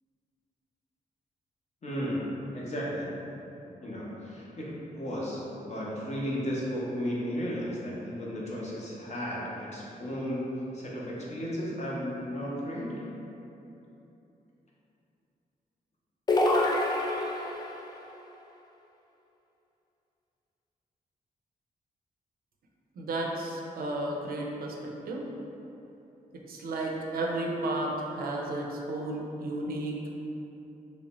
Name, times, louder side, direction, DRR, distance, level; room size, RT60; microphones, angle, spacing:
voice 1, 1.8-2.2 2.5-3.1 3.8-10.5 10.7-13.0, equal, 45° left, -6 dB, 0.7 m, -34 dB
sound 1, 16.3-17.8, left 1 dB, 25° left, 0.3 m, -26 dB
voice 2, 23.0-25.3 26.5-30.1, right 2 dB, 70° right, -1 dB, 0.4 m, -33 dB
3.2 x 2.7 x 2.9 m, 3.0 s
cardioid pair, 100°, 16 cm